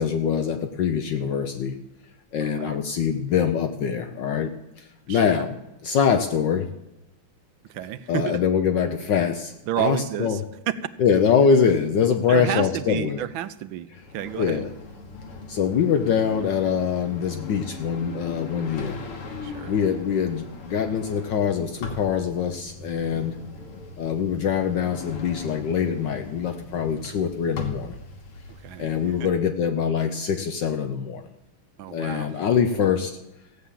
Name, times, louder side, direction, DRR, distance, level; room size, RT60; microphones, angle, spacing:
voice 1, 0.0-1.8 2.3-5.6 5.8-6.7 8.1-10.4 11.0-13.2 14.4-14.7 15.5-19.0 19.7-23.4 24.0-28.0 28.8-31.2 31.9-33.2, left 7 dB, 65° left, 7 dB, 1.3 m, -24 dB
voice 2, 2.4-2.8 5.1-5.4 7.6-8.4 9.7-10.4 10.7-10.9 12.3-14.6 19.4-19.8 28.5-29.3 31.8-32.5, right 11 dB, 75° right, 12 dB, 1.4 m, -31 dB
sound 1, 14.0-29.3, left 3 dB, 85° left, 2.6 m, -40 dB
15.5 x 8.4 x 7.5 m, 0.94 s
omnidirectional pair, 2.4 m